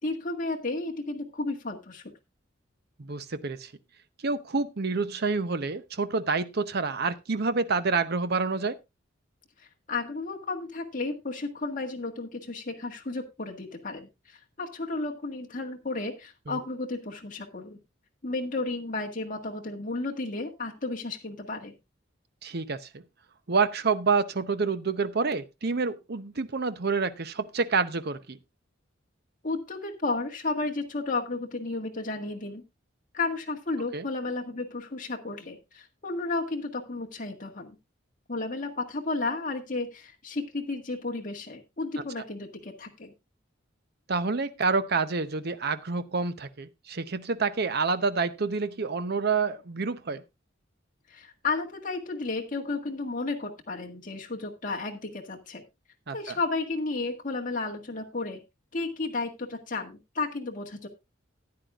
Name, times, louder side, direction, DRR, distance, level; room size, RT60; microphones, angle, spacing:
voice 1, 0.0-2.0 9.9-17.8 18.2-21.7 29.4-32.6 33.1-37.7 38.3-43.1 51.1-55.6 56.1-58.4 58.7-60.9, left 3 dB, 45° left, 1.7 m, -33 dB
voice 2, 3.0-3.7 4.2-8.8 16.5-16.6 22.4-23.0 23.5-28.4 33.9-34.1 44.1-50.2 56.1-56.4, right 4 dB, 55° right, 0.8 m, -28 dB
14.0 x 9.7 x 2.4 m
head